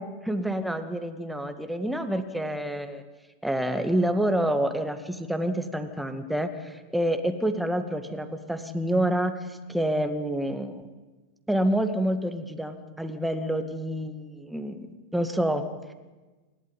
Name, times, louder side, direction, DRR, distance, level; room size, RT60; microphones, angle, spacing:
voice 1, 0.0-3.0 3.4-10.8 11.5-15.6, right 1 dB, ahead, 7 dB, 2.0 m, -28 dB
27.0 x 12.5 x 9.8 m, 1.2 s
figure-of-eight pair, 90°, 0 cm